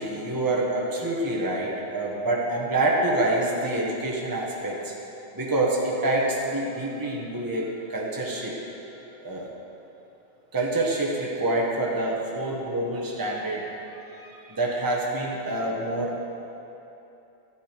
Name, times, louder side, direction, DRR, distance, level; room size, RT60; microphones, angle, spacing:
voice 1, 0.0-4.9 5.3-8.6 9.2-9.5 10.5-13.7 14.1-16.2, right 2 dB, 20° right, -2 dB, 1.1 m, -27 dB
12.5 x 8.6 x 4.5 m, 3.0 s
omnidirectional pair, 1.3 m